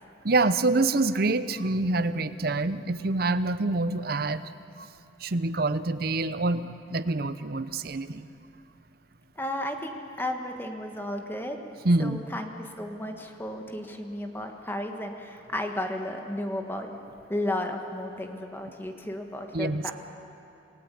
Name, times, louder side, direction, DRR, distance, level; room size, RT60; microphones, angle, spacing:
voice 1, 0.2-4.4 4.8-4.9 5.2-8.3 11.8-12.2 19.5-19.8, right 2 dB, 55° right, 13 dB, 0.7 m, -26 dB
voice 2, 9.4-11.6 12.0-16.9 17.3-19.9, left 1 dB, 10° left, 4 dB, 1.6 m, -33 dB
28.0 x 17.5 x 8.5 m, 2.8 s
head